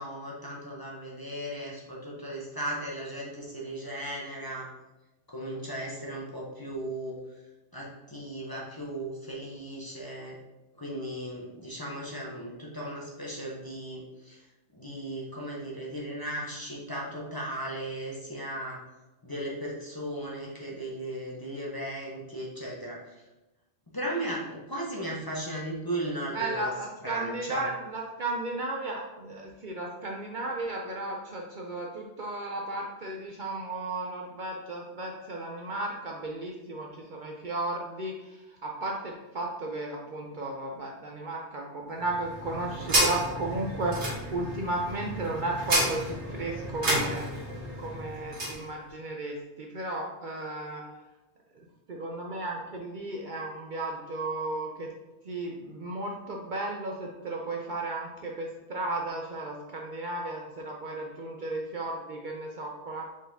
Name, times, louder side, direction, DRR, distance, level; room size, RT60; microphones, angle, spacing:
voice 1, 0.0-4.7 5.3-7.2 7.7-10.4 10.8-14.4 14.7-18.8 19.2-23.1 23.9-26.7 27.0-27.7, right 1 dB, 25° left, -4 dB, 0.7 m, -36 dB
voice 2, 26.3-47.3 47.8-50.8 51.9-54.9 55.2-63.0, right 2 dB, 55° right, 0 dB, 0.6 m, -34 dB
sound 1, 42.0-48.6, right 1 dB, 75° right, 1.6 m, -31 dB
5.0 x 3.9 x 2.7 m, 1.0 s
omnidirectional pair, 1.2 m